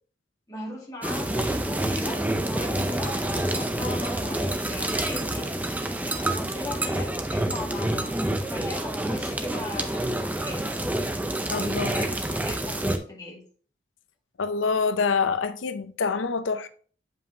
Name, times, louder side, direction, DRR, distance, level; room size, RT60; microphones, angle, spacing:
voice 1, 0.5-5.5 6.3-10.7 11.5-13.4, left 2 dB, 20° left, 2.0 m, -38 dB
sound 1, 1.0-13.0, right 1 dB, 10° right, 0.4 m, -28 dB
voice 2, 11.5-12.1 14.4-16.7, left 5 dB, 85° left, 0.6 m, -26 dB
7.2 x 5.3 x 2.7 m
head